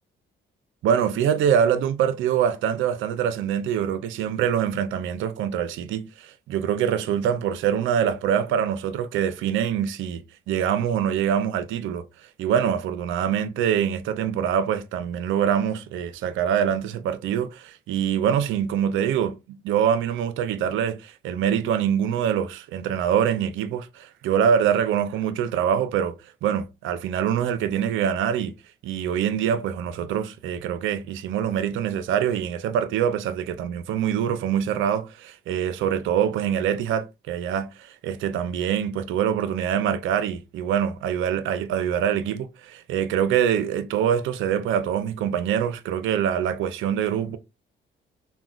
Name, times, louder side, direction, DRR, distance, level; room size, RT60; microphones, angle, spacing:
voice 1, 0.8-12.0 12.4-19.4 19.6-26.1 26.4-28.5 28.8-47.4, right 8 dB, 80° right, 0.4 m, -24 dB
3.6 x 2.1 x 2.3 m
cardioid pair, 90°, 20 cm